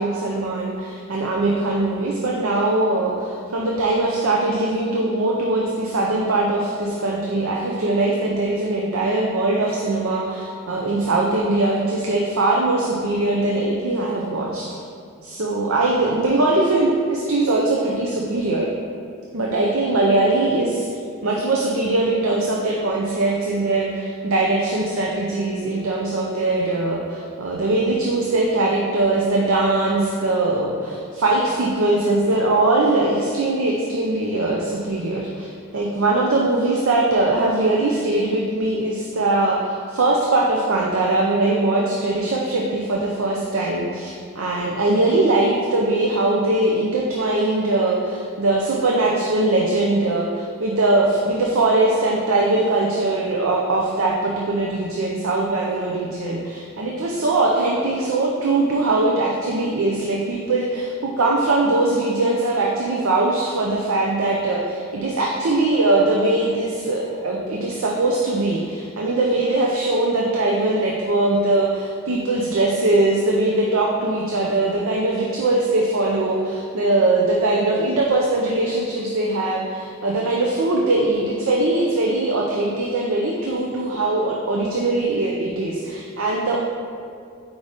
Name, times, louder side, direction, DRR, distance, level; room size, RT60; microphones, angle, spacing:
voice 1, 0.0-14.7 15.2-18.7 19.3-20.9 21.2-86.6, right 2 dB, 70° right, -2 dB, 0.6 m, -21 dB
4.7 x 4.0 x 4.9 m, 2.3 s
head